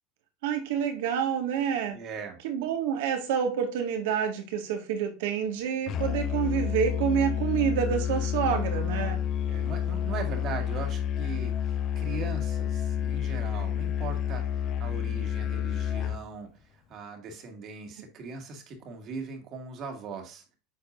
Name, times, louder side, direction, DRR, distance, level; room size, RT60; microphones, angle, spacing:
voice 1, 0.4-2.0 2.4-9.2, right 8 dB, 75° right, 1.8 m, -28 dB
voice 2, 1.9-2.4 9.4-11.5 12.0-14.5 14.8-16.5 16.9-20.4, right 4 dB, 50° right, 2.1 m, -39 dB
Musical instrument, 5.9-16.2, left 9 dB, 45° left, 0.6 m, -29 dB
8.5 x 4.6 x 2.6 m
supercardioid pair, 105°, 0 cm